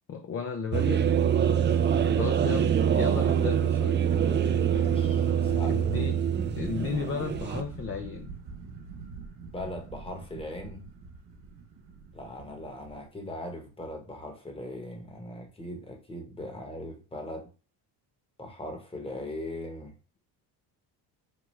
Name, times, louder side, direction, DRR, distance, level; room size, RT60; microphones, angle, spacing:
voice 1, 0.1-1.0 2.2-4.0 5.6-6.2 6.6-8.3, left 6 dB, 35° left, 5 dB, 0.5 m, -34 dB
sound 1, 0.7-7.6, right 8 dB, 30° right, 0.4 m, -25 dB
voice 2, 1.7-2.3 4.6-5.8 9.4-10.9 12.1-17.5 18.4-19.9, left 1 dB, 15° left, 3 dB, 1.1 m, -40 dB
sound 2, 4.0-13.0, right 4 dB, 75° right, 1.0 m, -43 dB
5.8 x 2.3 x 3.1 m, 0.34 s
cardioid pair, 105°, 41 cm